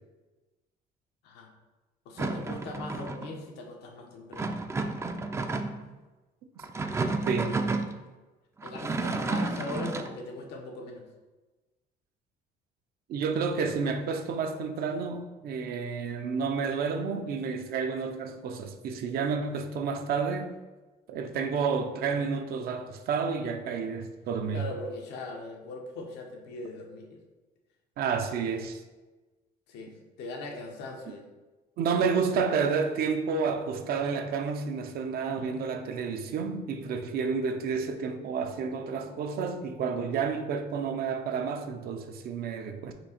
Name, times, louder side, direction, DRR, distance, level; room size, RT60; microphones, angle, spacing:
voice 1, 2.0-4.6 8.6-11.1 24.5-27.2 29.7-31.2, left 2 dB, 90° left, 0.9 m, -40 dB
sound 1, 2.2-3.3 4.3-5.9 6.6-7.9 8.6-10.1, right 3 dB, 15° right, 0.3 m, -31 dB
voice 2, 7.3-7.6 13.1-20.5 21.1-24.6 28.0-28.8 31.8-42.9, right 5 dB, 65° right, 0.5 m, -30 dB
4.4 x 2.7 x 4.3 m
cardioid pair, 110°, 17 cm